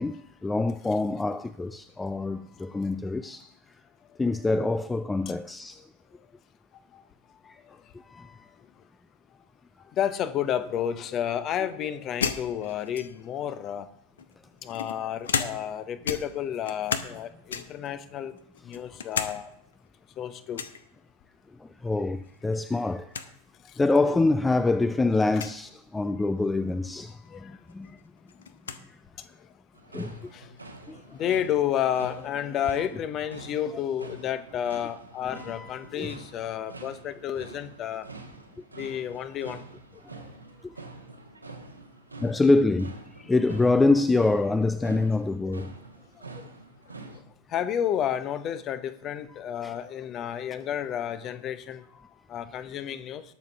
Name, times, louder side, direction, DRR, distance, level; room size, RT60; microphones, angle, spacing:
voice 1, 0.0-3.5 4.2-5.8 7.5-7.6 7.9-8.5 21.6-23.1 23.8-27.9 29.9-30.2 30.9-31.0 35.4-36.1 40.6-40.7 42.2-45.7 49.6-49.7, left 3 dB, 10° left, 0.4 m, -26 dB
voice 2, 10.0-13.9 14.6-18.3 18.6-19.5 20.2-20.6 27.3-27.5 30.3-30.5 31.1-38.1 38.8-39.6 47.5-51.8 52.3-53.2, left 10 dB, 30° left, 0.9 m, -31 dB
sound 1, 12.2-13.4 14.2-17.2 17.5-17.9 18.4-19.4 19.7-19.8 20.5-20.8 22.2-22.6 22.9-23.0 23.1-23.3 24.1-24.2 25.3-25.6 27.3-27.4 27.7-28.8, left 6 dB, 65° left, 0.8 m, -33 dB
sound 2, 29.7-47.2, right 3 dB, 85° right, 1.4 m, -46 dB
20.0 x 6.6 x 3.5 m
figure-of-eight pair, 90°, 0 cm